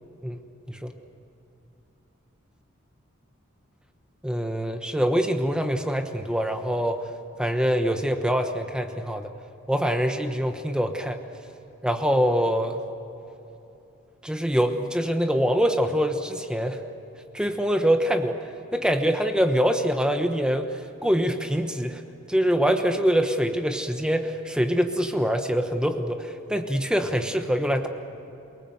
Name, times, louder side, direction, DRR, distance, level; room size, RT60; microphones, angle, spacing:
voice 1, 4.2-7.0 7.4-9.3 9.7-11.2 11.8-12.8 14.2-16.8 17.3-18.4 18.7-22.0 22.3-27.9, equal, 5° right, 6 dB, 1.1 m, -24 dB
28.5 x 19.0 x 7.9 m, 2.9 s
head